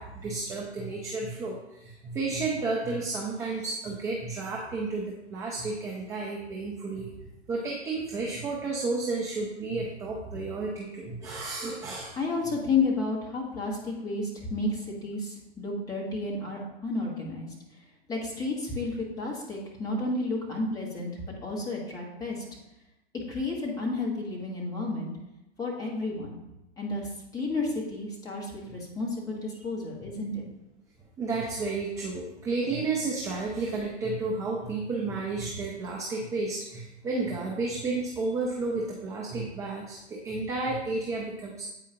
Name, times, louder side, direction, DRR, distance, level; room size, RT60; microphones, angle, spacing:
voice 1, 0.0-7.1 7.5-12.2 28.6-28.7 31.2-41.6, right 3 dB, 10° right, -2 dB, 0.4 m, -32 dB
voice 2, 12.2-17.5 18.1-22.4 23.3-25.1 25.6-26.4 26.8-30.4, left 3 dB, 10° left, -3 dB, 1.4 m, -31 dB
8.5 x 4.8 x 2.8 m, 0.93 s
hypercardioid pair, 135°, 34 cm